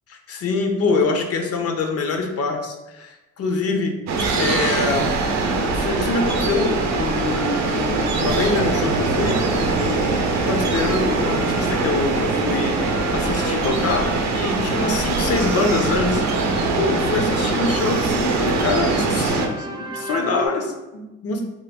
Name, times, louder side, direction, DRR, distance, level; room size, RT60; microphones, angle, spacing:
voice 1, 0.1-4.0 4.4-5.1 5.7-9.4 9.7-12.8 13.1-16.2 16.6-21.4, left 3 dB, 55° left, 4 dB, 0.6 m, -25 dB
sound 1, 4.1-19.5, right 3 dB, 65° right, 0.6 m, -22 dB
sound 2, 5.7-20.5, right 2 dB, 15° right, 0.3 m, -35 dB
2.9 x 2.3 x 3.4 m, 1.1 s
cardioid pair, 90°, 30 cm